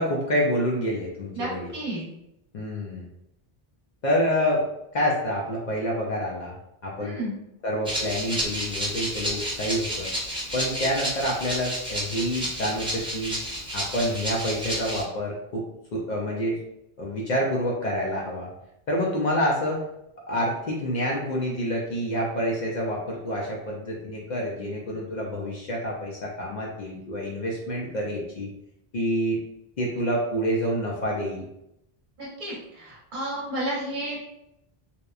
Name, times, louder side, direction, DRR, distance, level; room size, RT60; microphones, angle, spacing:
voice 1, 0.0-1.7 2.5-3.1 4.0-4.6 4.9-6.6 6.8-7.2 7.6-10.1 10.5-13.3 13.7-15.6 15.9-16.6 17.0-18.5 18.9-19.8 20.3-28.5 28.9-29.4 29.8-31.5, equal, 55° left, -3 dB, 0.5 m, -27 dB
voice 2, 1.3-2.0 7.0-7.4 32.2-34.2, right 1 dB, 55° right, -4 dB, 0.9 m, -32 dB
Rattle (instrument), 7.8-15.0, equal, 5° right, 0.5 m, -31 dB
2.9 x 2.1 x 2.3 m, 0.82 s
omnidirectional pair, 1.0 m